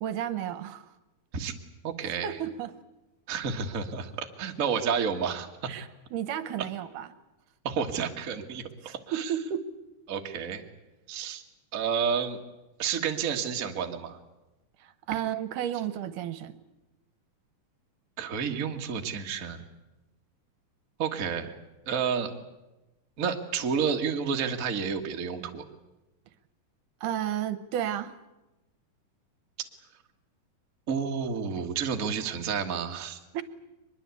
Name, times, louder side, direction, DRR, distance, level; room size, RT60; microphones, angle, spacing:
voice 1, 0.0-0.9 2.2-2.7 5.7-7.1 8.8-9.7 14.8-16.6 27.0-28.1 33.3-33.4, right 10 dB, 75° right, 13 dB, 2.4 m, -32 dB
voice 2, 1.8-2.4 3.3-5.7 7.6-9.3 10.1-10.6 11.1-11.4 11.7-12.4 12.8-14.2 18.2-19.6 21.0-21.5 21.8-22.3 23.2-25.6 30.9-33.2, right 6 dB, 40° right, 3 dB, 1.3 m, -30 dB
23.0 x 21.5 x 8.3 m, 1.0 s
omnidirectional pair, 3.8 m